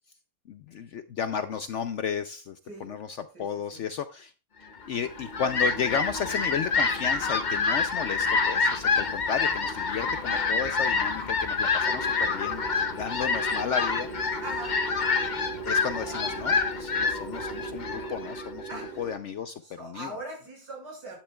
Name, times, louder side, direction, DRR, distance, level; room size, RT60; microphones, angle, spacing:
voice 1, 0.5-4.3 4.9-14.1 15.7-20.1, left 7 dB, 70° left, 10 dB, 0.7 m, -33 dB
Fowl, 4.9-18.9, left 4 dB, 40° left, 0.7 m, -27 dB
sound 1, 11.8-19.1, right 4 dB, 60° right, 2.2 m, -40 dB
voice 2, 14.4-14.8 18.7-19.0 19.6-21.2, right 2 dB, 80° right, -1 dB, 6.3 m, -40 dB
11.5 x 10.0 x 2.3 m, 0.33 s
omnidirectional pair, 1.8 m